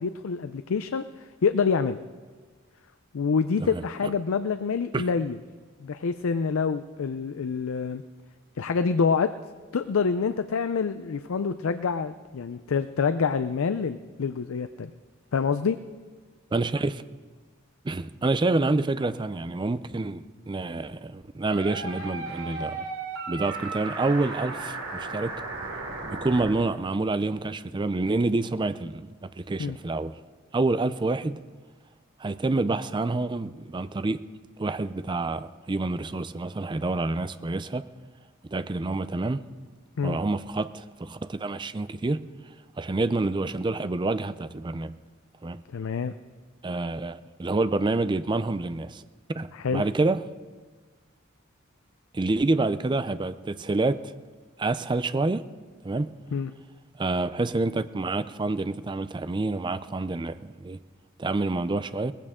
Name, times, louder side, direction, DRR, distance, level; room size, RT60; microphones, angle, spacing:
voice 1, 0.0-2.0 3.1-5.4 5.8-8.0 8.6-9.3 9.7-14.9 15.3-15.8 29.6-29.8 40.0-40.2 45.7-46.1 49.5-49.8 56.3-56.5, left 5 dB, 80° left, 0.5 m, -26 dB
voice 2, 16.5-17.0 17.8-22.9 23.3-25.4 26.1-30.2 30.5-31.4 32.2-34.2 34.6-37.9 38.5-39.4 40.0-42.3 42.8-45.0 45.4-45.6 46.6-49.0 49.3-50.2 52.1-54.1 54.6-55.5 55.8-56.1 56.9-60.8 61.2-62.1, right 2 dB, 20° right, 0.4 m, -28 dB
sound 1, 21.5-26.5, right 3 dB, 85° right, 3.0 m, -35 dB
19.0 x 15.0 x 3.7 m
head